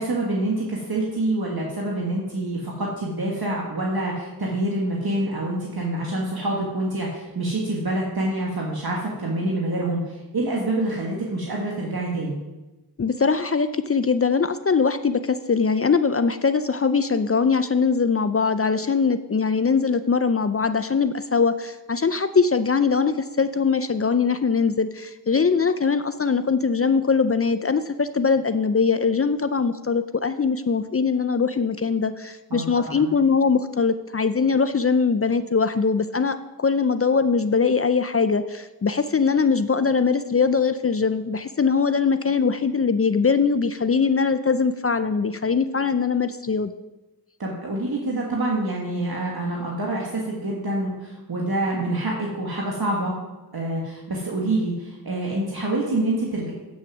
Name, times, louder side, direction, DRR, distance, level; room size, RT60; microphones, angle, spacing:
voice 1, 0.0-12.4 32.5-33.1 47.4-53.1 53.5-56.5, right 1 dB, 65° right, -3 dB, 1.7 m, -26 dB
voice 2, 13.0-46.7, left 5 dB, 35° left, 11 dB, 0.5 m, -22 dB
8.6 x 6.3 x 6.0 m, 1.1 s
cardioid pair, 40°, 39 cm